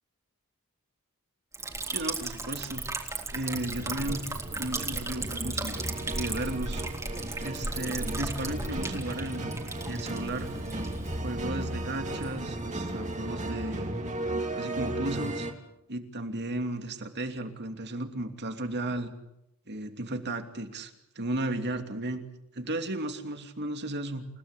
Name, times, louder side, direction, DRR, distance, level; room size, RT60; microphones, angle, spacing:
Liquid, 1.5-14.0, right 2 dB, 15° right, 3.6 m, -37 dB
voice 1, 1.9-2.8 3.3-4.2 4.6-5.8 6.1-6.8 7.4-9.6 9.9-10.5 11.2-13.9 14.6-15.5 15.9-19.1 19.7-22.2 22.5-24.3, right 1 dB, 50° right, 6 dB, 2.9 m, -34 dB
sound 1, 3.5-15.5, right 1 dB, 35° right, 3.2 m, -35 dB
29.5 x 17.5 x 8.4 m, 0.85 s
head